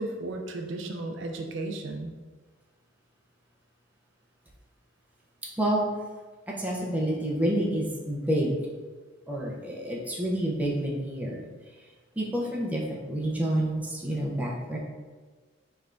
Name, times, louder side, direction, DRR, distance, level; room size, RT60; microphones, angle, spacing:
voice 1, 0.0-2.1, right 2 dB, 60° right, 4 dB, 0.4 m, -34 dB
voice 2, 5.4-5.9 6.5-8.6 9.3-11.4 11.8-11.9 12.2-14.8, right 1 dB, 10° right, -3 dB, 0.6 m, -28 dB
5.3 x 3.3 x 2.5 m, 1.4 s
head